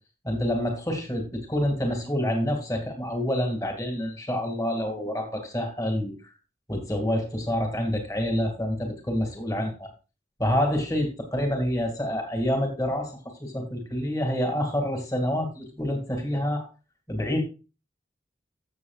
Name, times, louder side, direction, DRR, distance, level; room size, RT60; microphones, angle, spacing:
voice 1, 0.2-6.1 6.7-9.9 10.4-16.7 17.1-17.4, equal, 20° left, 3 dB, 2.3 m, -27 dB
14.5 x 7.1 x 2.4 m, 0.31 s
head